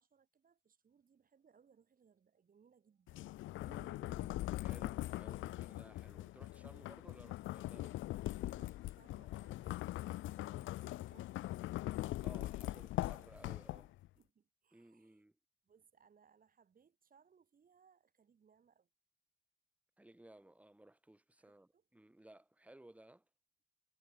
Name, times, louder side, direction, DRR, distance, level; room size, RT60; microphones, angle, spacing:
voice 1, 0.0-3.3 8.3-11.5 12.2-13.7 14.1-15.2 15.6-18.9 21.4-21.8, right 6 dB, 45° right, 5.0 m, -70 dB
sound 1, 3.1-14.1, left 16 dB, 75° left, 0.5 m, -42 dB
voice 2, 3.6-8.0 12.2-13.9 14.7-15.3 20.0-23.2, right 1 dB, 5° right, 2.4 m, -59 dB
cardioid pair, 90°, 20 cm